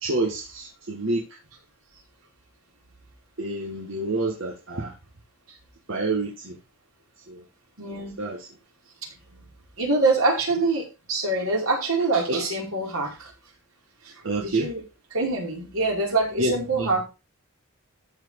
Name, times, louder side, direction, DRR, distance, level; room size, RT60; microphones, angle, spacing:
voice 1, 0.0-1.2 3.4-4.9 5.9-6.5 7.3-7.4 7.9-8.5 12.3-12.4 14.2-14.7 16.4-16.9, right 2 dB, 60° right, -1 dB, 2.1 m, -28 dB
voice 2, 7.8-8.2 9.0-9.4 9.8-13.3 14.0-14.8 15.1-17.0, right 3 dB, 90° right, -2 dB, 5.1 m, -25 dB
13.5 x 5.0 x 4.9 m, 0.28 s
head